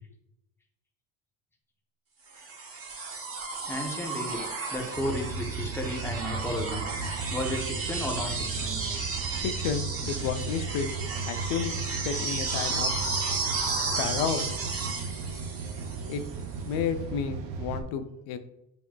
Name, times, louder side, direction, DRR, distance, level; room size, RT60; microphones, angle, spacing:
sound 1, 2.3-16.4 17.8-17.9, right 4 dB, 35° right, 1.1 m, -33 dB
voice 1, 3.7-4.4 4.7-6.9 7.3-8.8, left 1 dB, 5° left, 0 dB, 0.7 m, -33 dB
sound 2, 4.9-17.8, right 5 dB, 80° right, 0.8 m, -36 dB
voice 2, 9.2-10.9 11.3-13.0 14.0-14.6 16.1-16.2 16.7-18.4, left 7 dB, 85° left, 8 dB, 0.6 m, -32 dB
5.9 x 2.9 x 2.2 m, 0.86 s
cardioid pair, 120°, 41 cm